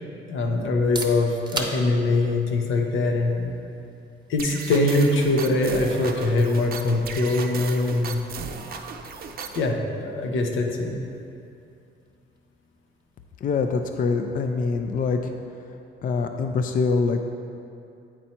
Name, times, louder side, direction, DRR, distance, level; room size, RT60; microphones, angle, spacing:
voice 1, 0.3-3.5 4.3-8.2 9.5-11.1, left 2 dB, 85° left, 2 dB, 0.8 m, -23 dB
sound 1, 0.7-16.3, right 2 dB, 20° right, 0.8 m, -43 dB
sound 2, 4.4-9.7, right 5 dB, 50° right, 0.5 m, -36 dB
voice 2, 13.4-15.3 16.0-17.2, left 4 dB, 45° left, 5 dB, 0.4 m, -24 dB
8.8 x 4.2 x 4.3 m, 2.6 s
cardioid pair, 90°, 20 cm